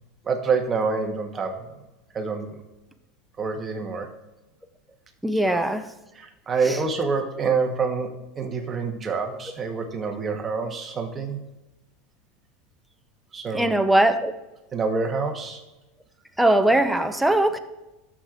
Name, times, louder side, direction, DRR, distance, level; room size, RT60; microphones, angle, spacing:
voice 1, 0.2-1.7 2.1-2.6 3.4-4.1 5.5-5.7 6.1-8.1 8.4-11.4 13.3-13.7 14.7-15.6, right 4 dB, 20° right, 1.1 m, -27 dB
voice 2, 5.2-5.9 6.6-6.8 13.5-14.3 16.4-17.6, right 1 dB, 5° right, 0.6 m, -20 dB
12.5 x 7.3 x 2.5 m
supercardioid pair, 140°, 0 cm